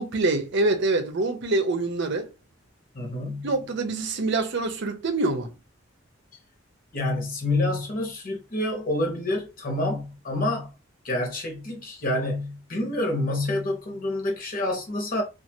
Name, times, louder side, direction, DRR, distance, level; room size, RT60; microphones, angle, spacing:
voice 1, 0.0-2.3 3.4-5.5, right 2 dB, 60° right, 0.6 m, -25 dB
voice 2, 2.9-3.5 6.9-10.7 11.0-15.2, left 1 dB, 45° left, 1.0 m, -28 dB
2.6 x 2.4 x 2.8 m
head